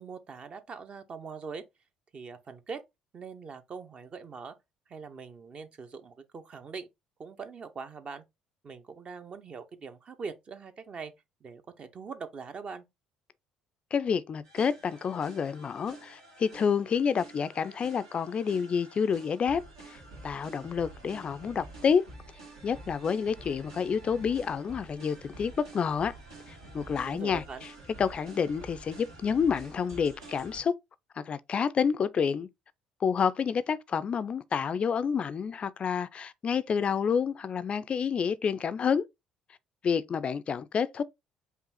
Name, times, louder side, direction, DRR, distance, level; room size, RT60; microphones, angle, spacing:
voice 1, 0.0-1.6 2.1-2.8 3.1-4.5 4.9-6.9 7.2-8.2 8.6-11.1 11.4-12.8 27.1-27.7, right 5 dB, 40° right, 0.8 m, -42 dB
voice 2, 13.9-22.0 22.6-26.1 26.5-27.4 28.0-30.7 31.2-32.5 33.0-39.1 39.8-41.0, left 6 dB, 40° left, 0.4 m, -29 dB
sound 1, 14.4-30.6, right 2 dB, 75° right, 1.8 m, -49 dB
5.4 x 2.4 x 4.1 m
figure-of-eight pair, 50°, 3 cm